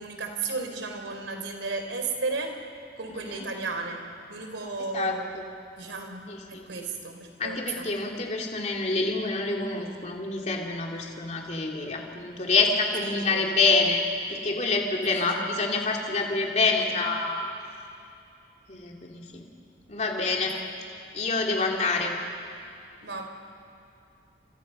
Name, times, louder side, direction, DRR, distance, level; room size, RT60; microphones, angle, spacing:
voice 1, 0.0-2.5 3.0-4.0 4.3-5.3 5.8-6.2 6.5-7.9 13.1-13.4 15.1-15.5 23.0-23.3, right 3 dB, 85° right, 4 dB, 3.9 m, -34 dB
voice 2, 3.1-3.4 4.9-5.4 6.3-6.7 7.4-14.0 14.3-17.5 18.7-19.4 19.9-20.5 21.1-22.1, left 3 dB, 40° left, 0 dB, 2.9 m, -27 dB
29.5 x 26.5 x 5.6 m, 2.6 s
head